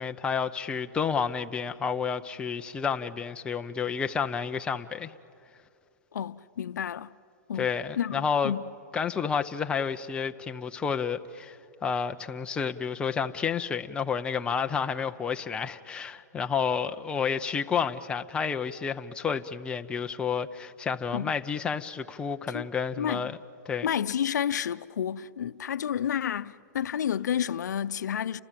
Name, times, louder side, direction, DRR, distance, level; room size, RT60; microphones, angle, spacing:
voice 1, 0.0-5.1 7.6-8.5 8.9-23.3 23.7-23.9, left 6 dB, 10° left, 0.6 m, -30 dB
voice 2, 6.1-7.1 7.5-7.7 8.0-8.7 21.1-21.3 22.5-22.7 23.0-23.2 23.8-28.4, left 9 dB, 90° left, 0.6 m, -30 dB
30.0 x 25.5 x 7.6 m
hypercardioid pair, 150°, 9 cm